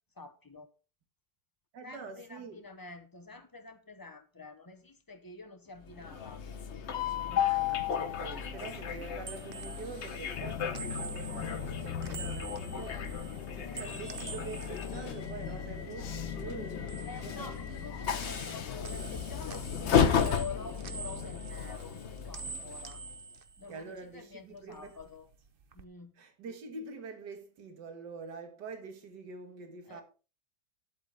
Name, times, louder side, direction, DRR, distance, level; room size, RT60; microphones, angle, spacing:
voice 1, 0.2-0.7 1.8-6.4 7.3-7.8 17.0-22.0 22.3-23.0 23.6-25.3 25.7-26.1 29.9-30.0, left 4 dB, 30° left, 0.3 m, -47 dB
voice 2, 1.7-2.7 7.7-13.1 13.5-17.6 23.7-25.0 26.2-30.0, right 4 dB, 70° right, 2.2 m, -45 dB
Train, 5.9-23.1, left 8 dB, 50° left, 0.9 m, -34 dB
sound 1, 8.9-16.2 16.5-17.9 18.2-24.2 24.5-25.8, right 5 dB, 50° right, 0.6 m, -47 dB
sound 2, 10.3-21.4, left 7 dB, 80° left, 1.5 m, -42 dB
9.6 x 8.3 x 3.9 m
omnidirectional pair, 2.0 m